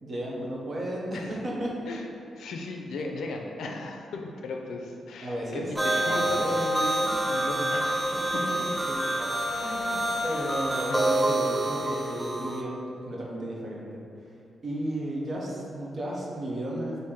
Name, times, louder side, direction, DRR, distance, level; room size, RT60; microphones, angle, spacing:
voice 1, 0.0-1.8 5.2-6.5 8.3-8.5 8.9-9.0 9.5-12.8 13.0-14.0 14.6-17.0, right 1 dB, 35° right, -3 dB, 0.7 m, -34 dB
voice 2, 2.4-8.2 10.9-11.2, left 3 dB, 85° left, 2 dB, 0.4 m, -36 dB
sound 1, 5.7-12.6, right 1 dB, 5° right, 0.3 m, -27 dB
4.5 x 2.6 x 3.6 m, 2.4 s
wide cardioid pair, 160°, 0 cm